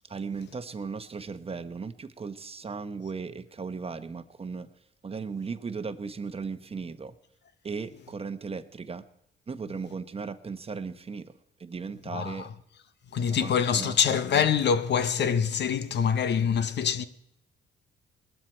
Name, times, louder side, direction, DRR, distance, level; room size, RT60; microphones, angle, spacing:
voice 1, 0.1-4.7 5.0-7.2 7.6-9.1 9.5-11.3 11.6-12.5 13.3-14.0, right 5 dB, 30° right, 1.0 m, -36 dB
voice 2, 12.1-12.5 13.1-17.1, left 7 dB, 60° left, 1.0 m, -25 dB
20.0 x 12.5 x 4.4 m
cardioid pair, 90°, 20 cm